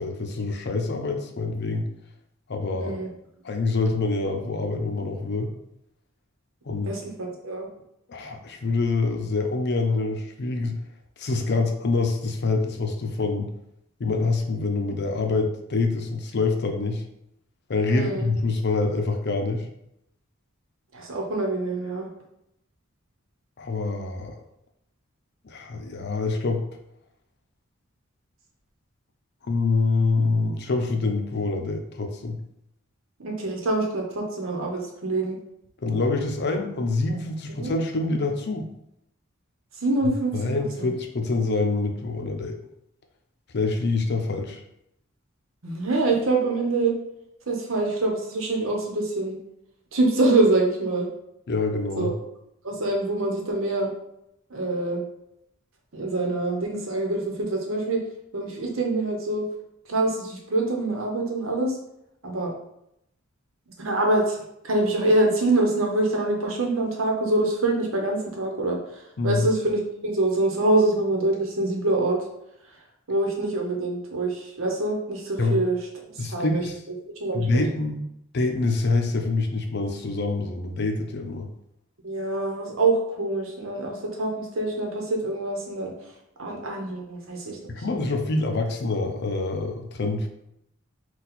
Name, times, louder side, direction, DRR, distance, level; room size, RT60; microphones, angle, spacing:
voice 1, 0.0-1.8 2.5-2.9 3.4-5.5 6.6-6.9 8.1-10.7 11.2-13.5 14.0-17.0 17.7-19.7 23.6-24.3 25.4-26.6 29.4-32.4 35.8-38.7 40.0-42.6 43.5-44.6 51.5-52.1 69.2-69.5 75.4-75.6 76.2-76.8 77.3-78.0 78.3-81.5 87.7-90.3, left 3 dB, 55° left, 4 dB, 0.6 m, -26 dB
voice 2, 2.7-3.1 6.8-7.7 17.9-18.3 20.9-22.1 33.2-35.4 37.6-37.7 39.8-40.3 40.8-40.9 45.6-47.0 47.5-49.4 49.9-51.1 52.0-52.1 52.6-53.9 54.5-55.0 55.9-58.0 58.3-59.5 59.9-61.8 62.2-62.5 63.8-64.4 64.6-68.8 69.2-72.2 73.1-75.8 76.3-76.6 77.2-77.6 82.0-85.9 86.4-87.6, right 2 dB, 80° right, 1 dB, 1.0 m, -25 dB
4.1 x 2.4 x 4.2 m, 0.79 s
head